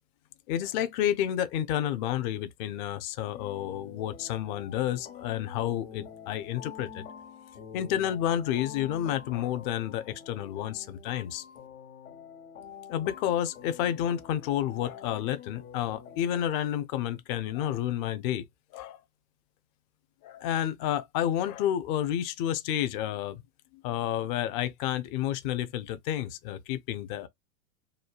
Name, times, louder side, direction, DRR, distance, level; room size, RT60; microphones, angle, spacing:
voice 1, 0.5-7.1 7.7-11.4 12.9-18.4 18.7-19.0 20.2-23.4 23.8-27.3, left 11 dB, 40° left, 0.5 m, -30 dB
sound 1, 3.3-16.2, left 7 dB, 70° left, 1.1 m, -47 dB
3.1 x 2.1 x 2.3 m
figure-of-eight pair, 95°, 42 cm